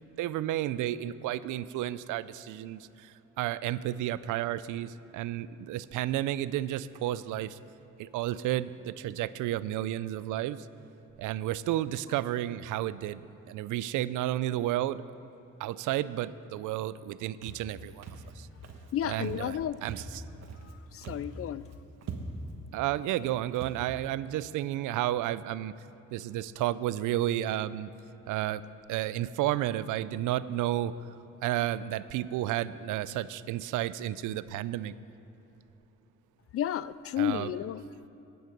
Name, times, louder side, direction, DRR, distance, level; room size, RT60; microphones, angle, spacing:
voice 1, 0.2-7.6 8.0-10.7 11.2-13.2 13.5-15.0 15.6-18.0 18.4-18.5 19.0-20.2 22.7-25.7 26.1-27.9 28.3-28.6 28.9-30.9 31.4-34.9 37.2-37.5, right 13 dB, 85° right, 16 dB, 0.5 m, -32 dB
Walk footsteps, 17.4-17.7 18.0-18.3 18.6-18.9 19.2-19.5 19.8-20.7 21.0-21.4 21.7-21.8 22.0-22.5 23.1-23.2 23.5-23.8, right 4 dB, 60° right, 1.4 m, -42 dB
voice 2, 18.9-19.8 20.6-21.7 36.5-38.1, left 10 dB, 50° left, 17 dB, 0.4 m, -32 dB
16.0 x 9.4 x 5.3 m, 3.0 s
cardioid pair, 90°, 30 cm